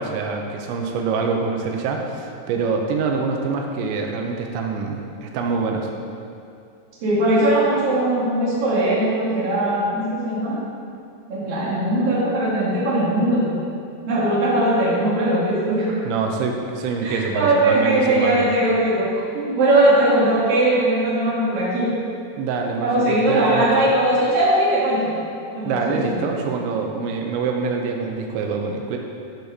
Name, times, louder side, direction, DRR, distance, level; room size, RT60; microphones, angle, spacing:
voice 1, 0.0-5.9 16.0-18.5 22.4-23.7 25.6-29.0, right 4 dB, 85° right, 2 dB, 3.1 m, -25 dB
voice 2, 7.0-10.6 11.3-13.5 14.1-15.9 17.0-19.1 19.3-21.9 22.8-25.1 25.5-26.1, right 1 dB, 40° right, -7 dB, 2.6 m, -19 dB
7.6 x 6.6 x 6.6 m, 2.5 s
omnidirectional pair, 5.1 m